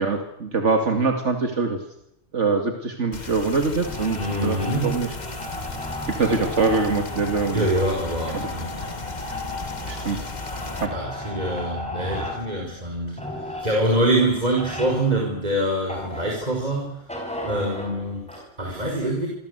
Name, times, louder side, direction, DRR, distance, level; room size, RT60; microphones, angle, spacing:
voice 1, 0.0-1.8 2.3-4.6 4.8-5.1 6.1-7.6 8.3-8.5 9.9-10.2 10.8-10.9, right 4 dB, 85° right, 5 dB, 2.6 m, -23 dB
sound 1, 3.1-10.9, left 3 dB, 40° left, 1.6 m, -36 dB
sound 2, 3.8-16.7 17.1-18.4, left 1 dB, 5° left, 6.6 m, -35 dB
voice 2, 4.2-5.0 7.5-8.8 9.2-9.4 10.9-17.0 17.4-19.3, right 1 dB, 35° right, 1 dB, 5.2 m, -25 dB
26.5 x 26.0 x 8.2 m, 0.81 s
omnidirectional pair, 1.2 m